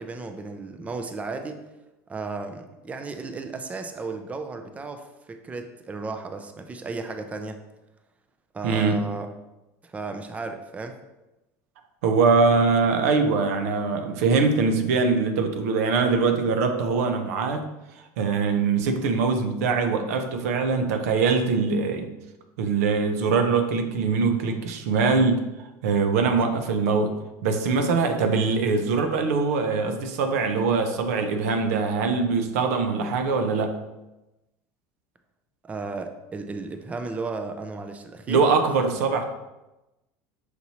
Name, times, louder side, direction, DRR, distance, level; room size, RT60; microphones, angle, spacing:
voice 1, 0.0-1.6 2.1-7.6 8.5-9.3 9.8-11.0 26.4-26.5 35.6-38.5, right 3 dB, 15° right, 6 dB, 0.4 m, -34 dB
voice 2, 8.6-9.1 12.0-17.6 18.2-22.1 22.6-25.5 25.8-33.8 38.3-39.2, right 4 dB, 90° right, 6 dB, 0.5 m, -23 dB
5.9 x 2.7 x 2.8 m, 1.0 s
supercardioid pair, 115°, 8 cm